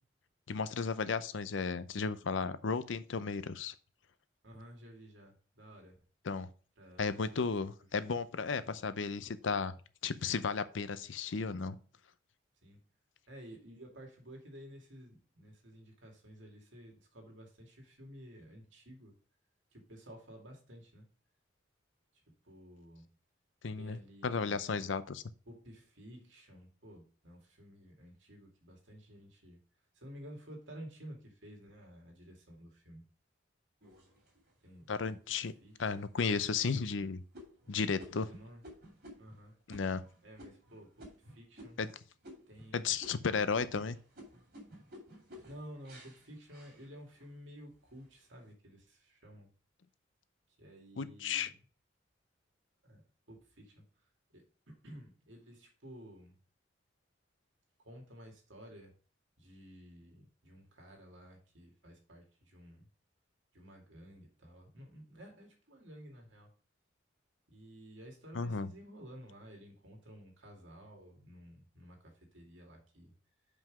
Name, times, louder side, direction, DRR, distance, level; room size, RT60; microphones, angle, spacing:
voice 1, 0.5-3.7 6.3-6.5 7.0-9.7 10.0-11.8 23.6-25.2 34.9-35.5 35.8-37.2 37.7-38.3 39.7-40.0 41.8-41.9 42.7-44.0 51.0-51.5 68.3-68.7, left 5 dB, 75° left, 13 dB, 0.6 m, -34 dB
voice 2, 4.4-6.0 6.8-7.7 12.6-12.8 13.3-19.2 19.7-21.1 22.4-23.1 23.8-24.6 25.5-29.6 29.9-33.0 34.6-35.4 35.6-36.0 38.2-38.6 39.2-39.6 40.2-41.8 42.5-43.0 45.4-49.5 50.6-51.6 52.8-53.0 53.3-53.8 54.3-56.4 57.8-58.9 59.4-62.9 63.5-66.5 67.5-73.1, equal, 75° right, 1 dB, 2.3 m, -53 dB
sound 1, 33.8-34.7 35.3-35.4 35.8-36.2 36.6-42.0 42.2-42.7 43.0-47.3 47.8-48.3, equal, 50° right, 2.7 m, -54 dB
5.7 x 5.2 x 4.8 m, 0.38 s
head